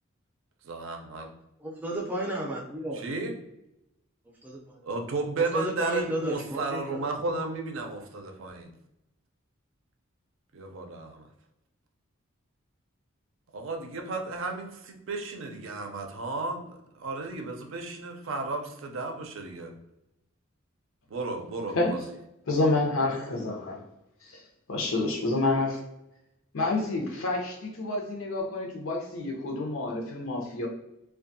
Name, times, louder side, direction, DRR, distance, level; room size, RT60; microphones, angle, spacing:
voice 1, 0.6-1.3 2.9-3.3 4.8-8.7 10.5-11.3 13.5-19.7 21.1-22.0, right 3 dB, 70° right, 4 dB, 0.5 m, -33 dB
voice 2, 1.6-3.0 4.4-4.6 5.5-6.8, right 1 dB, 10° right, -2 dB, 0.4 m, -32 dB
voice 3, 22.5-23.8 24.2-24.4 24.7-25.8 26.5-30.7, left 2 dB, 80° left, 0 dB, 0.6 m, -28 dB
2.6 x 2.3 x 2.6 m, 0.88 s
head